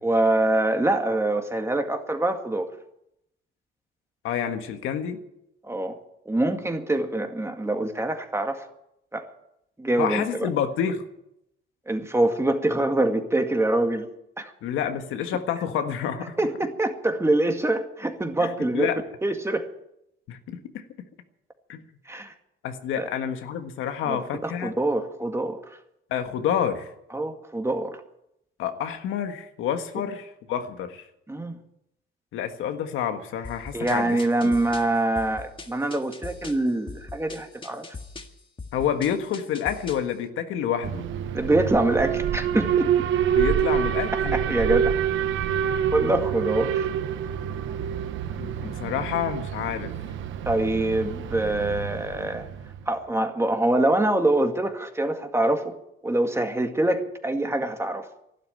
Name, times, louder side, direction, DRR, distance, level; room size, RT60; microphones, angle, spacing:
voice 1, 0.0-2.7 5.6-6.0 6.3-8.6 9.1-9.3 9.8-10.5 11.9-14.1 14.4-14.5 16.4-19.7 22.1-22.3 22.9-23.1 24.1-25.6 27.1-28.0 31.3-31.6 33.7-37.8 41.3-43.1 44.3-44.9 45.9-46.9 50.5-52.4 52.9-55.7 56.0-58.1, right 2 dB, 15° right, 5 dB, 2.1 m, -25 dB
voice 2, 4.2-5.2 10.0-11.0 14.6-16.4 18.4-19.0 20.3-20.8 21.7-21.8 22.6-24.7 26.1-26.9 28.6-31.0 32.3-34.2 34.4-34.6 38.7-41.0 43.3-44.4 48.4-49.9, left 8 dB, 90° left, 7 dB, 1.6 m, -28 dB
sound 1, 33.4-40.1, left 3 dB, 25° left, 1.8 m, -41 dB
Alarm, 40.8-52.8, right 9 dB, 80° right, 1.1 m, -27 dB
12.5 x 12.0 x 9.1 m, 0.82 s
cardioid pair, 90°, 20 cm